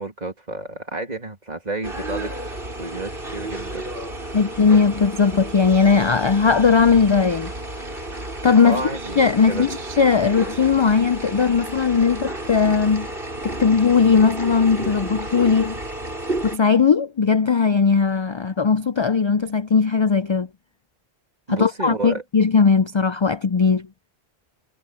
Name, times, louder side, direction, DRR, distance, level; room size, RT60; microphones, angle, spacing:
voice 1, 0.0-2.3 2.7-3.9 4.2-4.4 8.6-9.7 21.5-22.2, right 2 dB, 40° right, 2.7 m, -31 dB
sound 1, 1.8-16.6, right 1 dB, 60° right, 6.5 m, -32 dB
voice 2, 4.3-7.5 8.4-8.8 9.2-13.1 13.4-15.8 16.4-20.5 21.5-23.9, left 5 dB, 45° left, 0.3 m, -18 dB
omnidirectional pair, 1.1 m